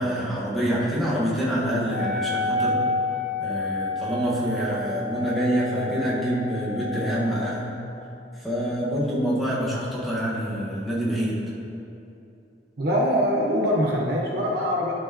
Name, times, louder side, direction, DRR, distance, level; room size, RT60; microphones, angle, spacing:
voice 1, 0.0-2.8 3.4-7.7 8.4-11.4, equal, ahead, -9 dB, 1.5 m, -26 dB
Wind instrument woodwind instrument, 1.8-7.6, left 2 dB, 50° left, 1.2 m, -29 dB
voice 2, 12.8-14.9, equal, 65° right, -3 dB, 1.1 m, -23 dB
12.0 x 4.6 x 3.0 m, 2.7 s
head